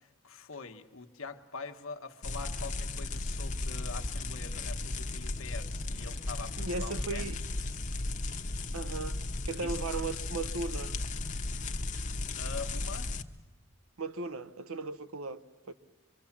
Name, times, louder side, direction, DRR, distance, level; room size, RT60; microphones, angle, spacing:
voice 1, 0.0-7.3 9.6-9.8 12.4-13.1, left 4 dB, 75° left, 1.3 m, -44 dB
sound 1, 2.2-13.2, left 2 dB, 35° left, 0.9 m, -35 dB
voice 2, 6.6-7.4 8.7-10.9 14.0-15.7, right 3 dB, 85° right, 0.9 m, -37 dB
25.0 x 24.0 x 7.4 m
head